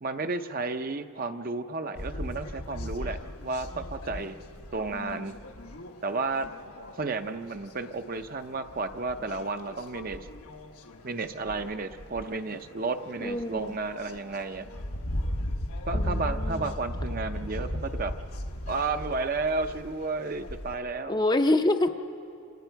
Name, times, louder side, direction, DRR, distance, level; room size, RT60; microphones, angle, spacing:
voice 1, 0.0-4.4 4.7-5.3 6.0-6.5 7.0-10.3 11.0-14.7 15.9-18.1 18.7-21.2, right 3 dB, 40° right, 8 dB, 0.6 m, -32 dB
sound 1, 2.0-20.8, left 1 dB, 90° left, 1.4 m, -37 dB
voice 2, 4.9-5.4 13.2-13.7 15.9-16.7 21.1-21.9, left 2 dB, 20° left, 7 dB, 0.5 m, -27 dB
27.5 x 27.0 x 4.6 m, 2.7 s
head